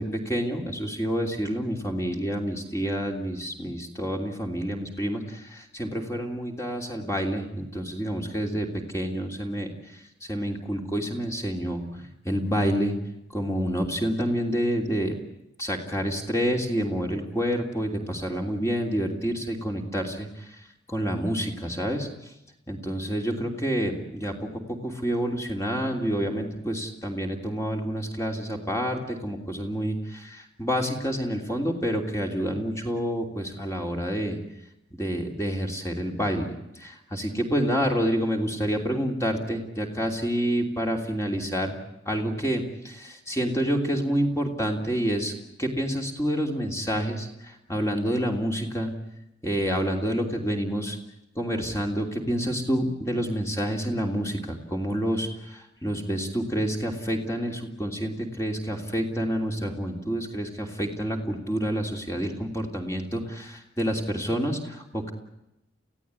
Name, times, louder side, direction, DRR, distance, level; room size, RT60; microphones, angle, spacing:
voice 1, 0.0-8.7 8.9-9.7 10.3-11.8 12.2-13.0 13.3-15.1 15.6-20.3 20.9-22.1 22.7-34.4 34.9-36.5 36.8-41.8 42.1-45.3 45.6-48.9 49.4-51.0 51.4-65.1, equal, 15° left, 2 dB, 3.1 m, -28 dB
29.0 x 16.0 x 9.7 m, 0.89 s
head